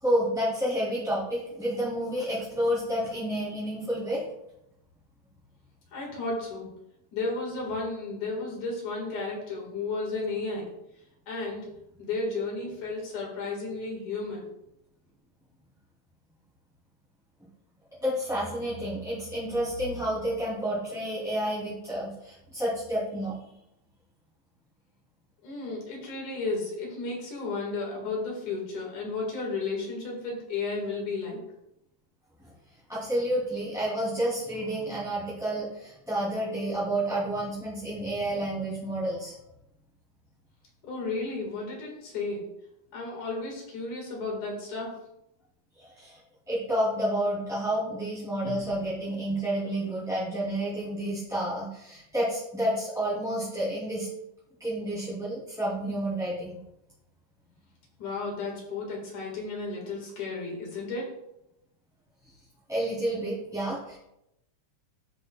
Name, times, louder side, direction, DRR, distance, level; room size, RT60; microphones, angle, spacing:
voice 1, 0.0-4.2 18.0-23.4 32.9-39.3 45.8-46.2 46.5-54.1 54.6-56.6 62.7-64.0, right 1 dB, ahead, -10 dB, 2.2 m, -30 dB
voice 2, 5.9-6.7 7.1-10.7 11.3-11.7 12.0-14.5 25.4-31.4 40.8-42.4 42.9-44.9 58.0-61.1, left 3 dB, 70° left, -1 dB, 3.2 m, -33 dB
15.0 x 5.6 x 2.3 m, 0.83 s
omnidirectional pair, 3.6 m